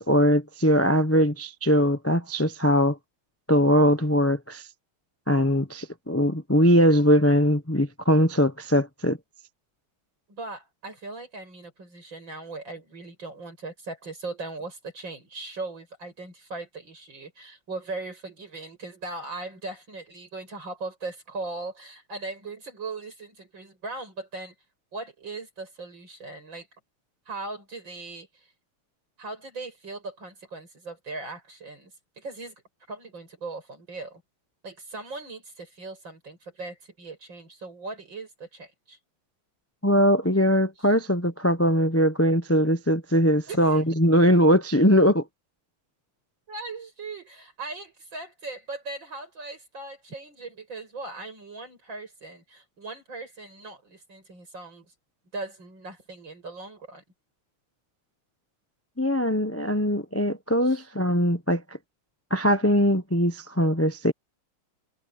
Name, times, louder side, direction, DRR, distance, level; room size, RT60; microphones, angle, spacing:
voice 1, 0.0-3.0 3.5-4.6 5.3-9.2 39.8-45.2 59.0-61.6 62.3-64.1, equal, 20° left, 0.4 m, -21 dB
voice 2, 10.3-24.5 24.9-26.7 27.3-28.5 29.2-32.5 32.9-34.2 34.6-39.0 43.5-43.8 46.5-54.8 55.3-57.0 60.6-60.8, right 3 dB, 55° right, 8.3 m, -39 dB
omnidirectional pair, 2.4 m